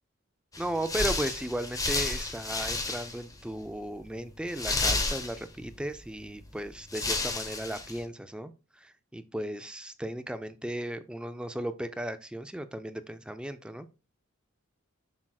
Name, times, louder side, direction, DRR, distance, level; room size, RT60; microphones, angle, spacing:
sound 1, 0.5-3.3 3.6-3.7 4.5-5.7 6.5-6.6 6.9-8.0, left 3 dB, 15° left, 0.8 m, -31 dB
voice 1, 0.6-13.9, right 1 dB, 5° right, 10 dB, 0.3 m, -36 dB
7.4 x 6.0 x 2.3 m, 0.31 s
head